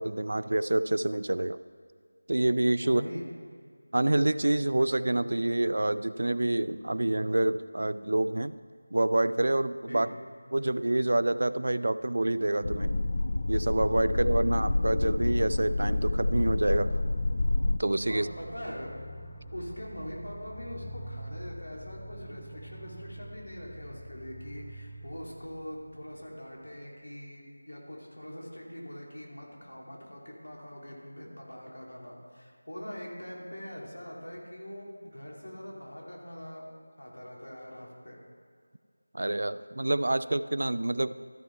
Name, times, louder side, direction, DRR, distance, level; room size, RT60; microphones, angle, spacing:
voice 1, 0.0-1.6 2.3-3.0 3.9-8.6 8.9-10.1 10.5-12.9 13.5-17.0 17.8-18.3 39.1-41.2, right 1 dB, 60° right, 15 dB, 0.3 m, -27 dB
voice 2, 2.8-3.2 9.9-10.1 18.1-19.0 19.5-36.6 37.0-38.2, equal, 85° left, -3 dB, 2.5 m, -42 dB
sound 1, 12.6-17.8, left 2 dB, 45° left, 0.3 m, -28 dB
sound 2, 14.1-26.5, equal, 15° left, 0.7 m, -46 dB
13.0 x 5.8 x 4.5 m, 2.1 s
figure-of-eight pair, 170°, 0 cm